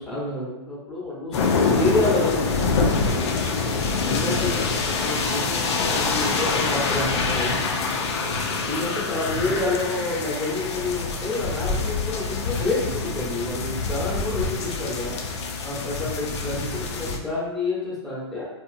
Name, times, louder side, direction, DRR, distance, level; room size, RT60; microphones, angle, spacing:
voice 1, 0.0-2.7 4.0-4.5 5.0-7.6 8.6-15.1 15.6-18.5, left 2 dB, ahead, -6 dB, 0.8 m, -28 dB
sound 1, 1.3-17.2, left 4 dB, 75° left, 0.5 m, -25 dB
2.8 x 2.4 x 2.5 m, 0.99 s
hypercardioid pair, 125°, 14 cm